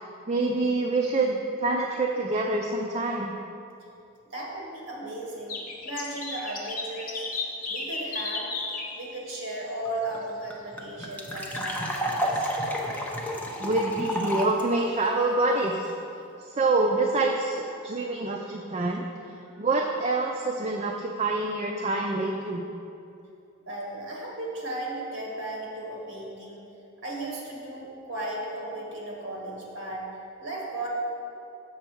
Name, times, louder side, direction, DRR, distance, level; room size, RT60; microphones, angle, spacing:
voice 1, 0.3-3.3 13.6-15.9 16.4-19.0 19.6-22.6, right 2 dB, 30° right, 1 dB, 0.4 m, -26 dB
voice 2, 4.2-8.5 8.9-12.5 19.4-19.5 23.7-26.6 27.0-30.1 30.4-30.9, right 1 dB, 60° right, -2 dB, 1.5 m, -36 dB
sound 1, 5.5-9.0 9.5-9.6 10.0-10.1 10.4-10.5, left 3 dB, 40° left, 1.0 m, -33 dB
sound 2, 9.9-10.0 10.1-10.2 10.5-14.6, equal, 5° left, 0.6 m, -30 dB
7.0 x 6.6 x 4.5 m, 2.7 s
head